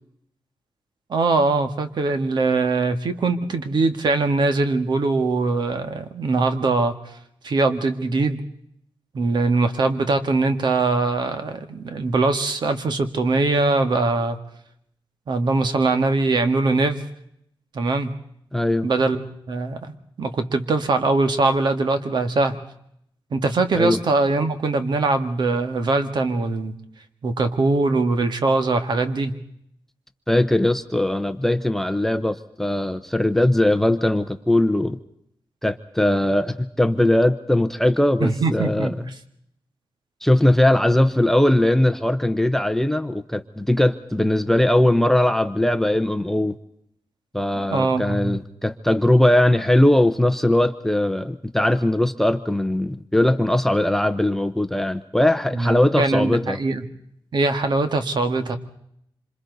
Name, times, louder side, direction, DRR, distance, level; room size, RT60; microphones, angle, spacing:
voice 1, 1.1-6.9 7.4-8.4 9.1-14.4 15.3-17.0 17.7-18.1 18.8-19.9 20.2-22.6 23.3-26.7 27.2-29.3 38.2-39.0 47.7-48.4 55.5-56.8 57.3-58.6, right 3 dB, 60° right, 8 dB, 1.8 m, -22 dB
voice 2, 18.5-18.9 23.8-24.0 30.3-35.0 35.6-39.1 40.2-46.5 47.3-56.6, left 1 dB, 5° left, 12 dB, 0.7 m, -20 dB
27.0 x 26.5 x 4.0 m, 0.73 s
wide cardioid pair, 165°, 9 cm